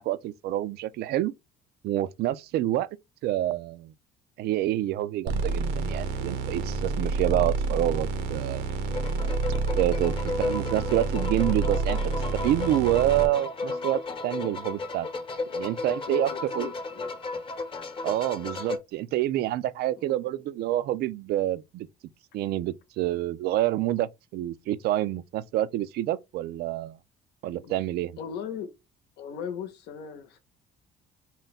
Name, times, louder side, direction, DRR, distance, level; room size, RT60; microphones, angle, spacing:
voice 1, 0.0-1.3 1.8-2.9 3.2-3.9 4.4-8.6 9.8-12.0 12.4-15.1 15.5-16.7 18.0-21.9 22.3-27.0 27.4-28.2, right 14 dB, 70° right, 0.4 m, -27 dB
sound 1, 5.3-13.3, right 3 dB, 85° right, 0.9 m, -29 dB
sound 2, 8.9-18.8, left 3 dB, 30° left, 0.8 m, -34 dB
voice 2, 16.0-17.1 19.9-20.2 27.6-27.8 28.2-28.7 29.2-30.4, left 7 dB, 80° left, 0.8 m, -38 dB
3.9 x 2.3 x 4.0 m
cardioid pair, 110°, 17 cm